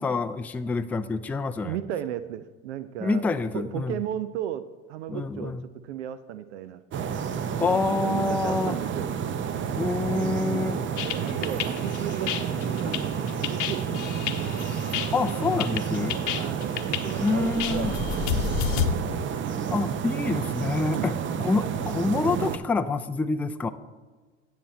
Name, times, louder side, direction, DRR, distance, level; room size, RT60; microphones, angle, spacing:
voice 1, 0.0-1.8 3.0-4.0 5.1-5.7 7.6-8.8 9.8-10.8 12.8-13.1 15.1-16.2 17.2-17.9 19.7-21.1 21.4-23.7, left 3 dB, 5° left, 9 dB, 0.3 m, -27 dB
voice 2, 1.6-3.3 3.5-5.6 5.8-6.8 7.6-7.7 8.0-9.1 10.1-14.3 16.3-19.1 20.9-21.2 22.0-22.1, right 11 dB, 85° right, 13 dB, 0.5 m, -35 dB
sound 1, 6.9-22.6, right 7 dB, 35° right, 0.6 m, -30 dB
sound 2, 11.0-18.9, left 9 dB, 60° left, 0.8 m, -30 dB
10.0 x 5.9 x 4.2 m, 1.4 s
hypercardioid pair, 75°, 34 cm